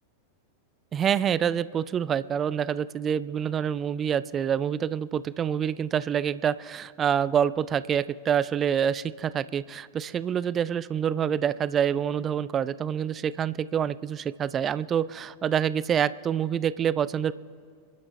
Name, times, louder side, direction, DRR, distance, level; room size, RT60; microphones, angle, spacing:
voice 1, 0.9-17.3, right 8 dB, 25° right, 19 dB, 0.3 m, -27 dB
27.0 x 12.0 x 3.3 m, 2.3 s
figure-of-eight pair, 90°, 0 cm